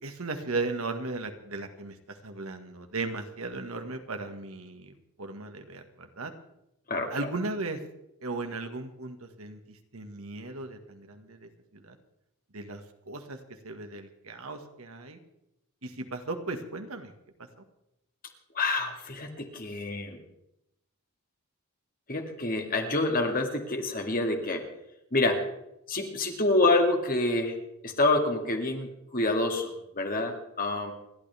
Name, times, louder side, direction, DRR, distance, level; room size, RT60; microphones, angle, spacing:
voice 1, 0.0-4.9 5.2-6.3 7.1-7.8 8.2-12.0 12.5-13.4 13.6-15.2 15.8-17.1, right 3 dB, 75° right, 6 dB, 1.7 m, -36 dB
voice 2, 6.9-7.3 18.5-20.2 22.1-24.6 25.1-25.4 25.9-27.5 27.8-30.9, left 2 dB, 40° left, 3 dB, 2.2 m, -27 dB
29.0 x 11.5 x 3.5 m, 0.84 s
head